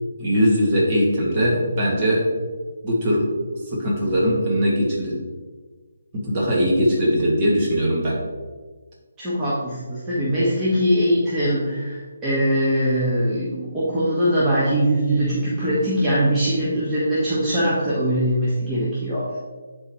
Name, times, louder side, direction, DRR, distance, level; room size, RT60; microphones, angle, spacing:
voice 1, 0.2-2.3 2.8-3.3 3.7-5.2 6.1-8.2, equal, 30° right, -4 dB, 2.2 m, -20 dB
voice 2, 9.2-19.3, equal, 15° right, -10 dB, 1.5 m, -21 dB
11.0 x 4.1 x 3.1 m, 1.4 s
figure-of-eight pair, 150°, 0 cm